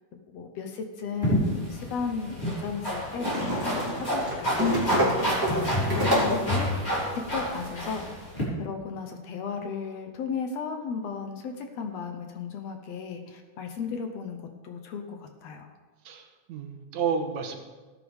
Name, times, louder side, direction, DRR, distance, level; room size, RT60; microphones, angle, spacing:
voice 1, 0.3-8.1 8.6-15.7, left 5 dB, 70° left, 5 dB, 1.9 m, -35 dB
sound 1, 1.2-8.4, equal, 20° left, 4.1 m, -29 dB
sound 2, 1.2-1.3 3.2-6.6, equal, 5° right, 3.7 m, -27 dB
voice 2, 16.1-17.6, right 6 dB, 75° right, 5 dB, 2.4 m, -31 dB
17.5 x 9.7 x 3.6 m, 1.3 s
omnidirectional pair, 3.4 m